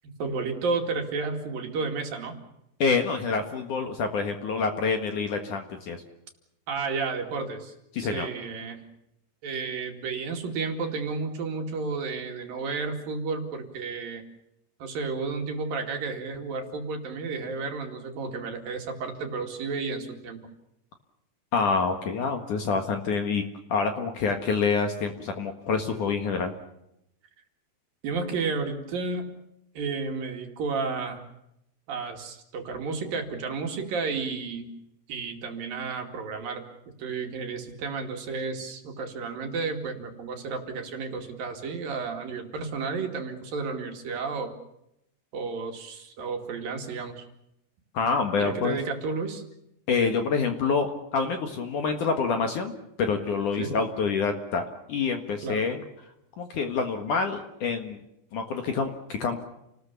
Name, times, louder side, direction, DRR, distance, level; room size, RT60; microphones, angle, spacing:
voice 1, 0.2-2.4 6.7-8.8 9.4-14.2 14.8-20.4 28.0-29.3 29.8-31.2 31.9-34.7 35.1-36.6 37.0-44.5 45.3-47.3 48.4-49.4 53.6-53.8 55.4-55.7, right 4 dB, 55° right, 4 dB, 3.9 m, -32 dB
voice 2, 2.8-6.0 7.9-8.3 21.5-23.4 23.7-26.5 47.9-48.8 49.9-52.7 53.0-55.8 56.4-58.0 58.3-59.4, left 5 dB, 55° left, 5 dB, 2.7 m, -27 dB
30.0 x 20.0 x 7.0 m, 0.82 s
omnidirectional pair, 5.0 m